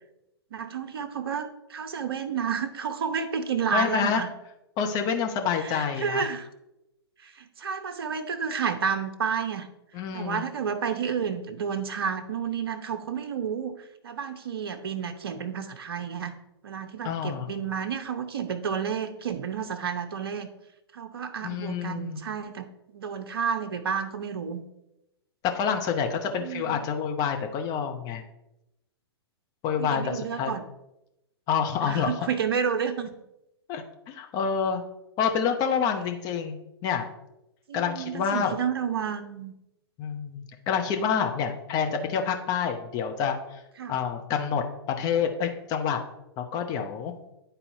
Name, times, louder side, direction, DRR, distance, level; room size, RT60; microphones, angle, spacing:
voice 1, 0.5-4.3 5.6-6.5 7.2-9.7 10.1-13.7 14.0-16.4 16.6-20.5 20.9-22.7 22.9-24.6 26.3-26.9 29.8-30.7 31.8-33.1 37.7-39.5 43.8-44.0, right 7 dB, 60° right, 8 dB, 0.7 m, -30 dB
voice 2, 3.7-4.3 4.8-6.2 9.9-10.4 17.0-17.5 21.4-22.2 25.4-28.2 29.6-30.5 31.5-32.1 33.7-34.8 35.2-37.0 37.7-38.5 40.0-43.6 43.9-46.0 46.4-47.1, left 7 dB, 30° left, 4 dB, 0.8 m, -28 dB
11.0 x 4.2 x 2.7 m, 0.90 s
figure-of-eight pair, 110°, 14 cm